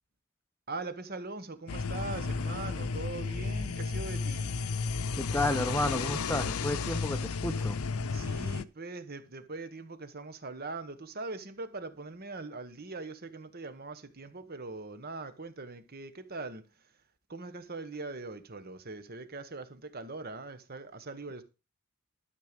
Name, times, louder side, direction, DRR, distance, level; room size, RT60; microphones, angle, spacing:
voice 1, 0.7-4.5 8.1-16.6 17.3-21.4, right 3 dB, 45° right, 1.2 m, -41 dB
sound 1, 1.7-8.6, left 4 dB, 80° left, 0.6 m, -33 dB
voice 2, 5.2-7.8, left 1 dB, 10° left, 0.9 m, -31 dB
12.5 x 6.7 x 5.2 m
head